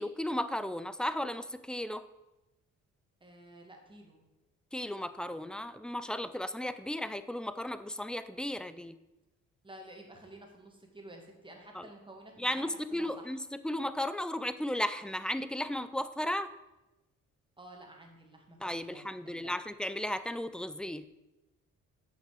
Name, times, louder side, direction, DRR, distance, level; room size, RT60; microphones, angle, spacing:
voice 1, 0.0-2.0 4.7-9.0 11.7-11.9 12.4-16.5 18.6-21.1, left 1 dB, 5° left, 12 dB, 0.3 m, -35 dB
voice 2, 3.2-4.3 9.6-12.7 12.9-13.3 17.6-19.5, right 1 dB, 15° right, 1 dB, 1.8 m, -51 dB
7.8 x 5.4 x 4.9 m, 1.0 s
cardioid pair, 90°, 30 cm